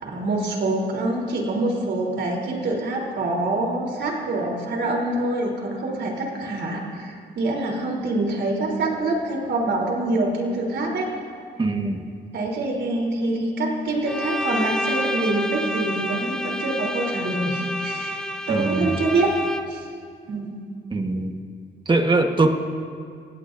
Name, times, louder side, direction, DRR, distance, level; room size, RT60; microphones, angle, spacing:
voice 1, 0.0-11.1 12.3-18.2 18.5-19.3 19.7-19.9 20.3-20.5, right 2 dB, 65° right, -1 dB, 3.6 m, -25 dB
voice 2, 11.6-12.0 18.5-18.9 20.9-21.4 21.9-22.5, right 2 dB, 25° right, 4 dB, 1.5 m, -21 dB
Bowed string instrument, 14.1-19.9, equal, 5° left, 0.8 m, -29 dB
28.0 x 17.0 x 2.7 m, 2.2 s
cardioid pair, 90°, 20 cm